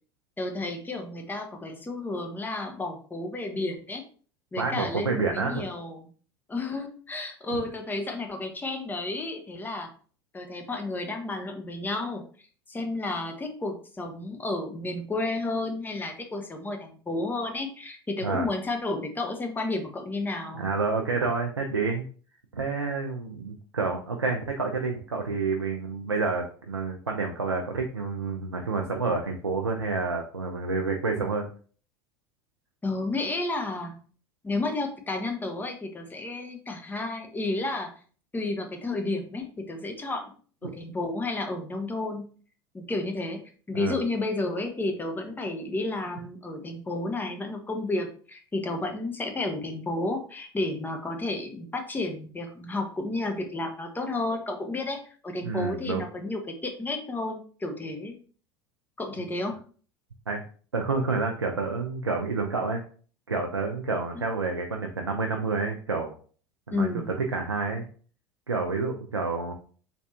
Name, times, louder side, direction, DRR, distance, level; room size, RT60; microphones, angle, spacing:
voice 1, 0.4-4.0 4.5-6.1 6.5-9.9 10.3-12.2 12.7-20.7 32.8-34.0 34.4-37.9 38.3-40.3 40.6-42.3 42.7-43.4 43.7-58.1 59.0-59.6 64.1-64.2 66.7-67.1, left 2 dB, 15° left, 4 dB, 0.7 m, -31 dB
voice 2, 4.6-5.7 18.2-18.5 20.5-22.0 22.5-31.5 43.7-44.0 55.4-56.0 60.3-60.4 60.7-62.8 63.3-66.1 66.7-67.0 67.3-67.8 68.5-69.5, right 4 dB, 85° right, 2 dB, 0.4 m, -29 dB
3.4 x 3.1 x 2.7 m, 0.42 s
figure-of-eight pair, 70°, 13 cm